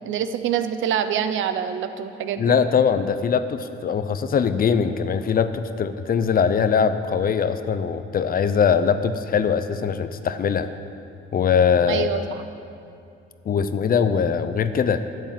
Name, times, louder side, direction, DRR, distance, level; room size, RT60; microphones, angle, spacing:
voice 1, 0.0-2.4 11.9-12.2, right 9 dB, 75° right, 10 dB, 0.7 m, -25 dB
voice 2, 2.4-10.7 11.3-12.2 13.4-15.0, left 6 dB, 45° left, 11 dB, 0.6 m, -21 dB
9.0 x 8.1 x 7.5 m, 2.5 s
cardioid pair, 90°, 20 cm